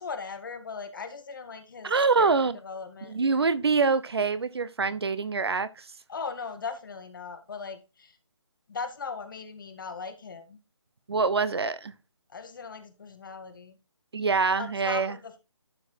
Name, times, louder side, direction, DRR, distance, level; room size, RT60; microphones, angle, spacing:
voice 1, 0.0-2.3 2.6-3.2 6.1-8.2 8.7-10.6 12.3-13.8 14.6-15.4, left 5 dB, 45° left, 1.7 m, -38 dB
voice 2, 1.8-2.6 3.1-5.9 11.1-11.9 14.1-15.1, right 4 dB, 60° right, 1.0 m, -25 dB
11.5 x 4.7 x 4.6 m
figure-of-eight pair, 160°, 15 cm